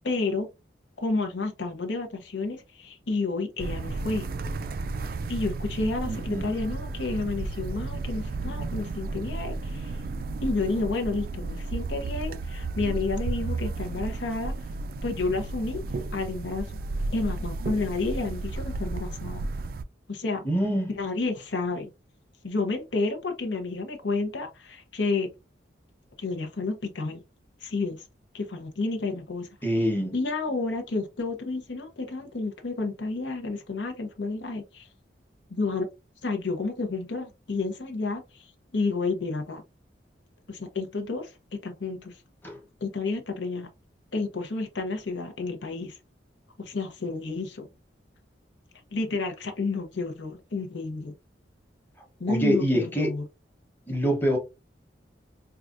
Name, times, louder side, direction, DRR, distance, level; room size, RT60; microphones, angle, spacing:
voice 1, 0.0-0.5 1.0-4.3 5.3-10.0 10.4-14.7 15.0-15.8 16.1-16.8 17.1-19.5 20.1-20.5 20.9-21.9 22.4-25.3 26.2-27.2 27.6-28.0 28.3-29.5 30.1-34.9 35.5-35.9 36.2-39.6 40.5-42.2 42.8-43.7 44.1-46.0 46.6-47.7 48.9-51.1 52.2-53.2, left 3 dB, 80° left, 0.8 m, -30 dB
sound 1, 3.6-19.8, right 3 dB, 50° right, 0.3 m, -33 dB
voice 2, 6.0-6.4 20.4-20.9 29.6-30.1 42.4-42.6 52.3-53.1 53.9-54.4, equal, 10° left, 1.0 m, -25 dB
4.6 x 2.4 x 2.5 m
head